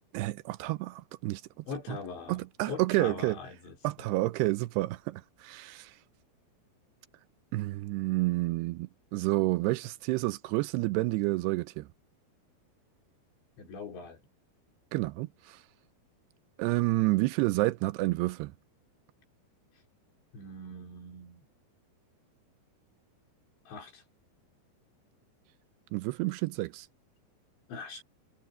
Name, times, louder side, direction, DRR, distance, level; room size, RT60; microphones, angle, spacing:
voice 1, 0.1-1.4 1.9-2.0 2.3-3.4 3.8-6.0 7.5-11.9 14.9-15.6 16.6-18.5 25.9-26.9, right 20 dB, 85° right, 2.5 m, -29 dB
voice 2, 1.7-2.4 2.7-4.1 13.6-14.2 20.3-21.4 23.7-24.0 27.7-28.0, left 4 dB, 75° left, 6.2 m, -42 dB
omnidirectional pair, 5.2 m